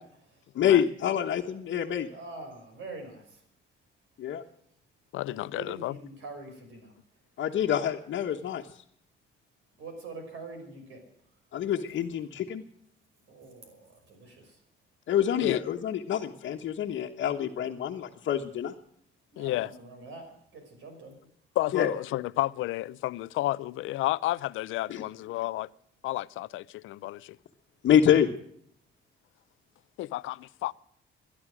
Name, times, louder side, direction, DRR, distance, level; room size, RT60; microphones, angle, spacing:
voice 1, 0.0-0.4 2.1-3.4 5.3-7.0 9.8-11.4 13.3-14.6 19.3-21.2, right 3 dB, 80° right, 5.6 m, -45 dB
voice 2, 0.5-2.1 4.2-4.4 7.4-8.6 11.5-12.6 15.1-18.7 21.7-21.9 24.9-25.0 27.8-28.3, left 9 dB, 70° left, 1.2 m, -26 dB
voice 3, 5.1-5.9 15.4-15.6 19.4-19.7 21.6-25.7 26.0-27.4 30.0-30.7, left 16 dB, 85° left, 0.5 m, -31 dB
19.0 x 11.5 x 6.2 m
cardioid pair, 90°, 20 cm